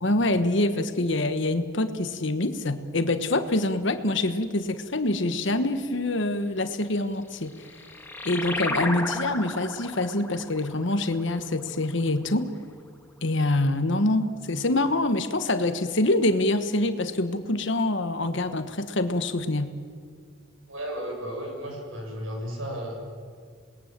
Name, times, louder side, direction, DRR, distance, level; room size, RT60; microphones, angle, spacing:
voice 1, 0.0-7.5 8.2-12.5 13.2-19.7, left 2 dB, 60° left, 10 dB, 1.3 m, -25 dB
sound 1, 7.2-12.3, left 2 dB, 10° left, 1.7 m, -34 dB
voice 2, 20.7-23.0, equal, 70° right, 1 dB, 7.0 m, -34 dB
27.0 x 20.5 x 7.5 m, 2.1 s
head